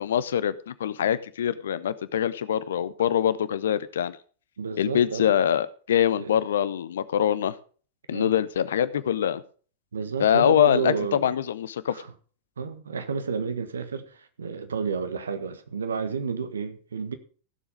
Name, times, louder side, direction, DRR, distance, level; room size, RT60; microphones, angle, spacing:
voice 1, 0.0-4.2 4.8-7.5 8.1-9.4 10.2-11.9, left 10 dB, 65° left, 0.8 m, -24 dB
voice 2, 4.6-5.3 6.2-6.4 8.1-8.3 9.9-11.3 11.8-12.1 12.6-17.1, right 5 dB, 70° right, 1.5 m, -31 dB
16.0 x 7.3 x 5.1 m
figure-of-eight pair, 90°, 0 cm